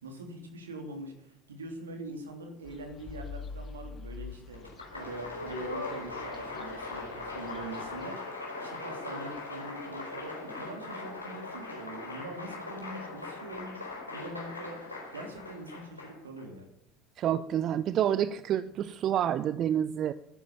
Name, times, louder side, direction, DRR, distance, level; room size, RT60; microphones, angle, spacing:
voice 1, 0.0-8.3 8.6-14.8 15.1-16.7, right 2 dB, 80° right, 4 dB, 3.1 m, -43 dB
sound 1, 2.6-8.0, left 5 dB, 35° left, 1.9 m, -46 dB
Applause, 4.5-16.4, left 3 dB, 90° left, 4.3 m, -40 dB
voice 2, 17.2-20.1, right 10 dB, 45° right, 15 dB, 0.6 m, -28 dB
12.5 x 10.5 x 8.7 m, 0.77 s
figure-of-eight pair, 65°, 0 cm